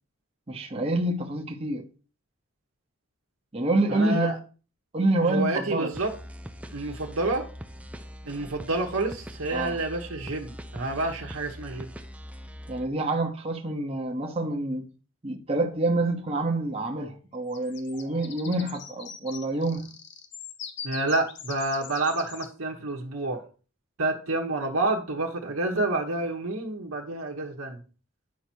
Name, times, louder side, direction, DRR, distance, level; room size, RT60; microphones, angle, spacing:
voice 1, 0.5-1.8 3.5-4.3 4.9-5.9 9.5-9.8 12.7-14.9 15.2-19.8, right 2 dB, 25° right, 0.9 m, -27 dB
voice 2, 3.9-4.3 5.2-6.1 6.7-7.5 8.2-11.9 20.8-23.4 24.0-27.8, right 2 dB, 80° right, 1.2 m, -29 dB
sound 1, 5.9-12.9, equal, 5° right, 0.5 m, -42 dB
sound 2, 17.5-22.5, left 7 dB, 55° left, 0.9 m, -42 dB
9.5 x 5.7 x 4.5 m
head